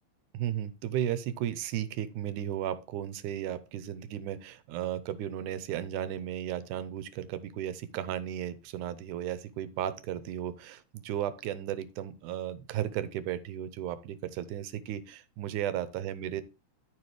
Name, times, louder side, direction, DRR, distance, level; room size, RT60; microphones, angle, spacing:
voice 1, 0.3-16.4, right 11 dB, 85° right, 14 dB, 2.2 m, -35 dB
12.5 x 4.6 x 3.2 m, 0.31 s
omnidirectional pair, 3.5 m